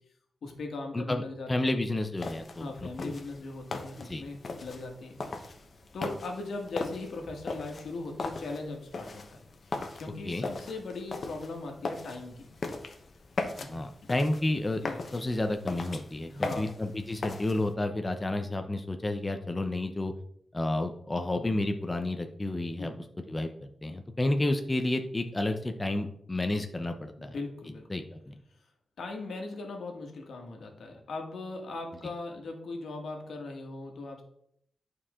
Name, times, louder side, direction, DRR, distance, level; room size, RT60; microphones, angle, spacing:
voice 1, 0.4-1.8 2.6-5.6 5.9-9.2 9.6-12.5 13.6-13.7 14.8-15.0 16.3-16.7 22.8-23.0 27.2-27.9 29.0-34.2, left 3 dB, 90° left, 2 dB, 1.7 m, -39 dB
voice 2, 0.9-3.1 4.0-4.2 10.2-10.5 13.7-14.8 15.1-20.1 20.5-22.9 23.3-27.4 27.9-28.3, left 2 dB, 20° left, 5 dB, 0.8 m, -31 dB
sound 1, 2.2-17.7, left 3 dB, 55° left, 1.1 m, -39 dB
11.0 x 4.7 x 3.7 m, 0.69 s
wide cardioid pair, 95°, 0 cm